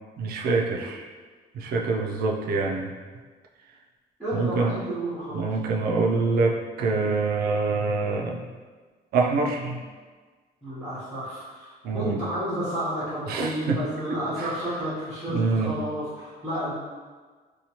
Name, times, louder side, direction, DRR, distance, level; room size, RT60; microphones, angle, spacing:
voice 1, 0.2-1.1 1.5-2.9 4.3-4.7 5.3-8.4 9.1-9.8 11.8-12.2 13.3-13.8 14.4-14.5 15.3-15.7, right 4 dB, 70° right, 0 dB, 0.4 m, -25 dB
voice 2, 4.2-5.5 10.6-16.7, equal, ahead, -11 dB, 0.7 m, -31 dB
2.8 x 2.2 x 2.8 m, 1.4 s
cardioid pair, 145°, 17 cm